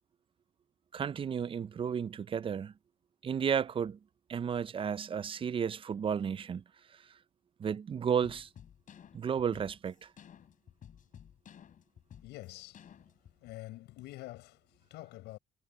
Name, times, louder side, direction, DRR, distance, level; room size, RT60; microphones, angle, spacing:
voice 1, 0.9-2.7 3.2-4.0 4.3-6.6 7.6-8.5 9.1-9.9, right 7 dB, 30° right, 0.5 m, -33 dB
sound 1, 8.2-13.4, left 9 dB, 50° left, 5.6 m, -54 dB
voice 2, 12.2-12.9 13.4-15.4, left 18 dB, 85° left, 7.7 m, -47 dB
cardioid pair, 110°, 17 cm